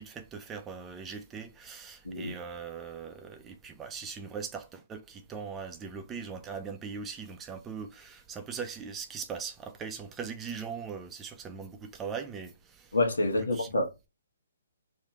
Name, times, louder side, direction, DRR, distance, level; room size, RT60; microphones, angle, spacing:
voice 1, 0.0-12.9 13.5-13.7, right 6 dB, 15° right, 0.6 m, -40 dB
voice 2, 12.9-14.1, left 2 dB, 80° left, 1.4 m, -28 dB
3.3 x 2.8 x 4.3 m
figure-of-eight pair, 135°, 0 cm